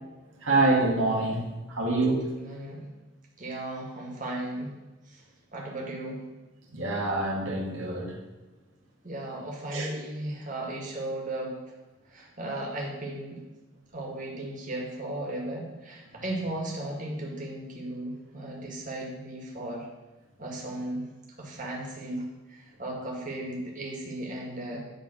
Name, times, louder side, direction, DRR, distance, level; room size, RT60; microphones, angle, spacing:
voice 1, 0.4-1.4 1.7-2.2 6.7-8.1 9.7-10.0, right 2 dB, 75° right, -2 dB, 2.0 m, -25 dB
voice 2, 2.4-2.9 3.4-4.7 5.1-5.2 5.5-6.2 9.0-11.6 12.1-13.4 13.9-19.9 20.4-21.1 21.4-24.8, right 1 dB, 40° right, -1 dB, 2.0 m, -36 dB
10.5 x 3.8 x 6.0 m, 1.1 s
head